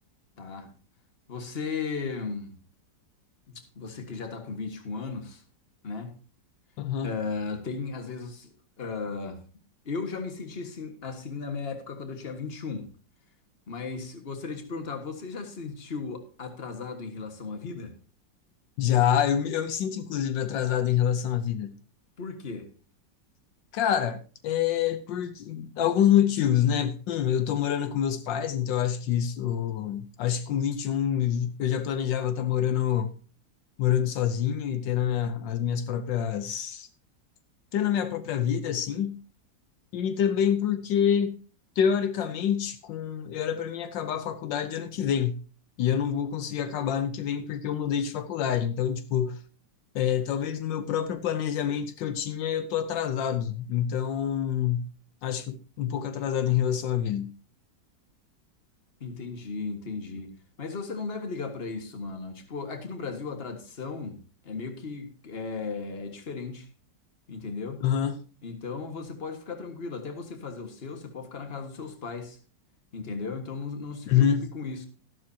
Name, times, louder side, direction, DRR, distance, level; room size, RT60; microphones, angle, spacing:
voice 1, 0.4-0.7 1.3-2.6 3.5-5.4 5.8-6.1 7.0-9.4 9.9-12.9 13.7-17.9 22.2-22.7 59.0-66.7 67.3-67.8 68.4-72.4 72.9-74.9, left 4 dB, 35° left, 1.7 m, -36 dB
voice 2, 6.8-7.1 18.8-21.7 23.7-33.1 33.8-36.9 37.7-39.2 39.9-41.4 41.8-45.4 45.8-49.4 49.9-54.9 55.2-57.3 67.8-68.2 74.1-74.5, left 9 dB, 80° left, 1.4 m, -26 dB
13.0 x 12.0 x 2.8 m
omnidirectional pair, 2.0 m